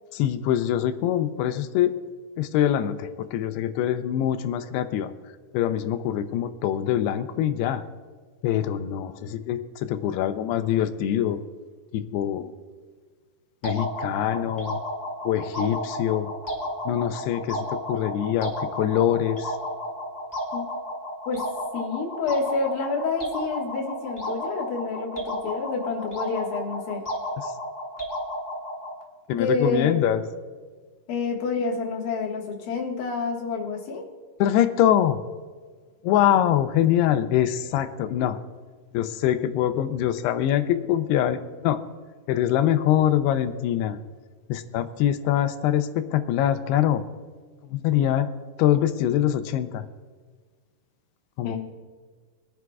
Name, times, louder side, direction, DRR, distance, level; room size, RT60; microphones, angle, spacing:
voice 1, 0.1-2.0 2.4-5.1 5.5-7.8 8.4-11.4 11.9-12.5 13.6-14.8 15.2-16.3 16.9-19.6 27.4-27.5 29.3-30.2 34.4-35.2 36.0-38.4 38.9-41.8 42.3-44.0 44.5-47.0 47.7-48.3 48.6-49.9 51.4-51.6, left 11 dB, 85° left, 10 dB, 2.6 m, -24 dB
sound 1, 13.6-29.0, equal, 15° left, 0.6 m, -33 dB
voice 2, 21.7-27.0 29.3-29.9 31.1-34.1 51.4-51.6, left 4 dB, 65° left, -2 dB, 3.2 m, -28 dB
23.0 x 11.0 x 2.3 m, 1.5 s
omnidirectional pair, 4.7 m